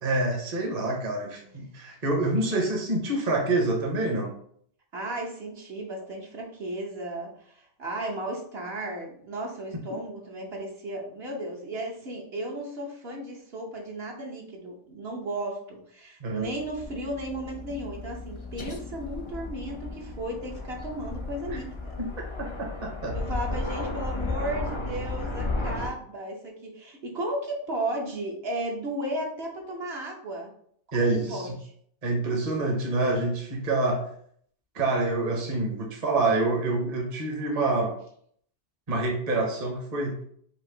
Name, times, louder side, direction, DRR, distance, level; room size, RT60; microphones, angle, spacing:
voice 1, 0.0-4.3 16.2-16.5 21.5-21.6 22.0-22.1 22.4-23.2 30.9-31.5 32.0-34.1 34.7-37.9 38.9-40.2, right 2 dB, 35° right, 1 dB, 0.9 m, -27 dB
voice 2, 4.9-22.0 23.1-30.5 30.9-31.7, right 1 dB, 60° right, -1 dB, 1.1 m, -35 dB
Aircraft, 16.4-25.9, left 2 dB, 35° left, 0.5 m, -34 dB
5.1 x 2.6 x 3.8 m, 0.62 s
omnidirectional pair, 1.2 m